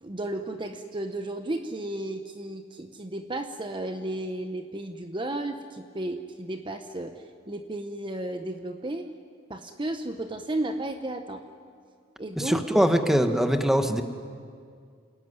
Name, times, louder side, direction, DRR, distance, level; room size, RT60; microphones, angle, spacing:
voice 1, 0.0-9.1 9.5-11.4 12.2-12.9, right 1 dB, 25° right, 6 dB, 1.0 m, -33 dB
voice 2, 12.4-14.0, equal, ahead, 6 dB, 1.4 m, -22 dB
28.0 x 19.5 x 9.8 m, 2.2 s
head